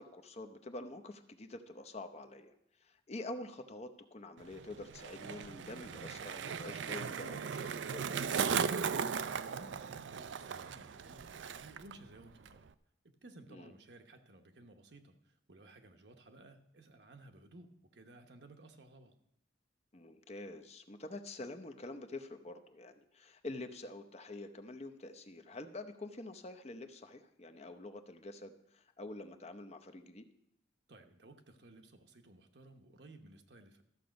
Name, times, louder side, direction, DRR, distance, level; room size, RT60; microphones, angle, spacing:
voice 1, 0.0-8.5 13.5-13.7 19.9-30.3, left 2 dB, 35° left, 7 dB, 0.7 m, -47 dB
Skateboard, 4.4-11.9 12.2-12.7, right 6 dB, 80° right, 0.4 m, -37 dB
voice 2, 9.2-12.6 13.2-19.2 30.9-33.8, right 2 dB, 65° right, 5 dB, 1.0 m, -57 dB
13.5 x 6.9 x 5.2 m, 0.76 s
head